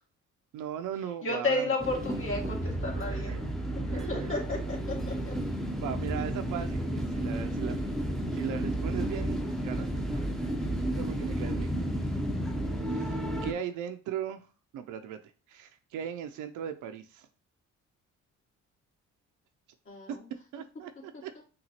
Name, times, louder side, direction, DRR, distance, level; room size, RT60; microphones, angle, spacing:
voice 1, 0.5-1.7 2.9-3.4 3.8-4.3 5.8-7.8 8.3-9.9 11.0-11.7 12.9-14.5 14.7-15.2 15.5-17.3 20.1-20.2 20.5-21.4, right 9 dB, 85° right, 7 dB, 0.5 m, -38 dB
voice 2, 1.2-3.4 3.9-5.3 19.9-20.2, left 3 dB, 45° left, -3 dB, 1.9 m, -32 dB
sound 1, 1.8-13.5, right 1 dB, ahead, 0.6 m, -32 dB
5.8 x 2.4 x 2.8 m, 0.35 s
cardioid pair, 90°, 30 cm